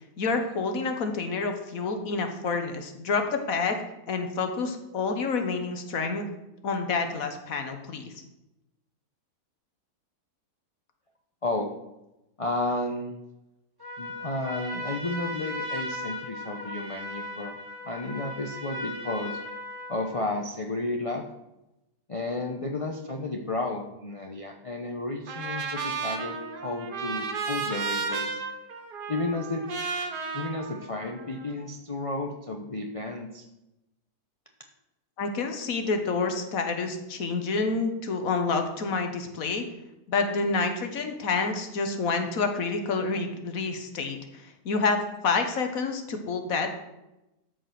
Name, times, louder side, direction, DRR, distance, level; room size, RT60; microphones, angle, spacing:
voice 1, 0.2-3.8 4.1-6.3 6.6-8.1 35.2-39.6 40.1-44.2 44.6-46.7, left 4 dB, 60° left, 6 dB, 1.6 m, -28 dB
voice 2, 12.4-13.1 14.0-17.5 17.9-19.4 19.9-21.2 22.1-28.4 29.1-29.9 30.3-33.5, left 2 dB, 30° left, 2 dB, 0.7 m, -32 dB
Trumpet, 13.8-20.3, left 1 dB, 15° right, 2.3 m, -37 dB
Trumpet 2, 25.3-31.5, right 4 dB, 85° right, 1.8 m, -33 dB
13.5 x 5.1 x 6.0 m, 0.93 s
omnidirectional pair, 1.7 m